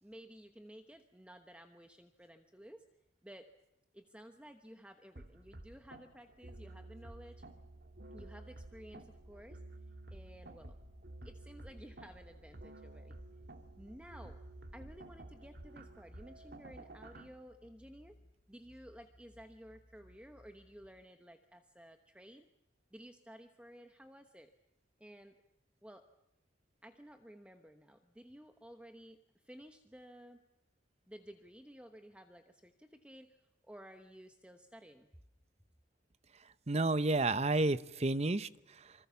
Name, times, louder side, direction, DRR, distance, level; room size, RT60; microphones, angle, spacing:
voice 1, 0.0-2.9 3.2-3.5 3.9-7.4 8.1-9.6 10.1-10.8 11.2-13.2 13.8-14.4 14.7-18.1 18.5-22.5 22.9-24.5 25.0-25.4 25.8-26.1 26.8-30.4 31.1-35.1, equal, 5° right, 6 dB, 1.1 m, -54 dB
sound 1, 5.2-17.3, right 2 dB, 55° right, 2.3 m, -52 dB
sound 2, 9.2-21.0, left 1 dB, 15° left, 6.6 m, -61 dB
voice 2, 36.7-38.9, right 2 dB, 35° right, 15 dB, 0.8 m, -31 dB
26.5 x 25.0 x 7.1 m, 0.91 s
head